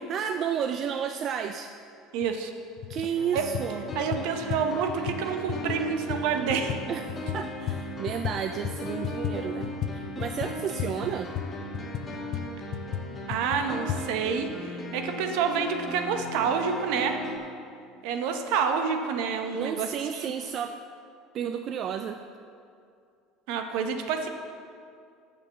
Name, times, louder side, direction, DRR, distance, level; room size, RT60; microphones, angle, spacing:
voice 1, 0.1-1.7 2.9-3.8 6.9-11.3 19.5-20.8 21.3-22.2, right 8 dB, 50° right, 7 dB, 0.4 m, -32 dB
voice 2, 2.1-2.5 3.3-3.4 3.9-6.8 13.3-17.2 18.0-20.3 23.5-24.3, right 6 dB, 70° right, 6 dB, 0.9 m, -28 dB
sound 1, 2.2-2.3 2.8-3.1 3.4-8.4 8.6-14.0, left 10 dB, 55° left, 0.5 m, -34 dB
sound 2, 3.1-17.4, left 1 dB, 25° left, 1.7 m, -37 dB
6.8 x 6.6 x 6.8 m, 2.4 s
hypercardioid pair, 90°, 0 cm